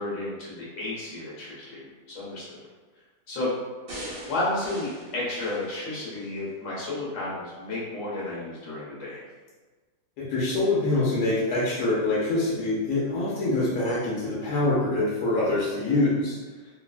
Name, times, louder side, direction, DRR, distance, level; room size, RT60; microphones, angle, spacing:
voice 1, 0.0-2.4 3.3-3.5 4.3-9.2, left 2 dB, 55° left, -6 dB, 1.2 m, -32 dB
sound 1, 3.9-6.4 6.9-7.0, right 1 dB, 65° right, 1.4 m, -41 dB
voice 2, 10.2-16.4, left 2 dB, 75° left, -6 dB, 1.1 m, -25 dB
3.1 x 2.1 x 2.4 m, 1.3 s
omnidirectional pair, 1.8 m